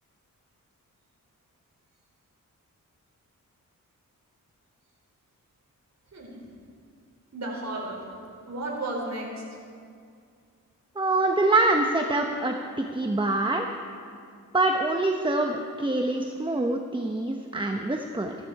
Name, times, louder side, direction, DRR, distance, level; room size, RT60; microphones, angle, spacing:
voice 1, 7.3-8.0 8.4-9.4, right 2 dB, 50° right, -2 dB, 4.4 m, -33 dB
voice 2, 11.0-13.7 14.5-18.3, right 2 dB, 15° right, 3 dB, 1.0 m, -25 dB
16.0 x 13.0 x 4.8 m, 2.3 s
cardioid pair, 65°, 34 cm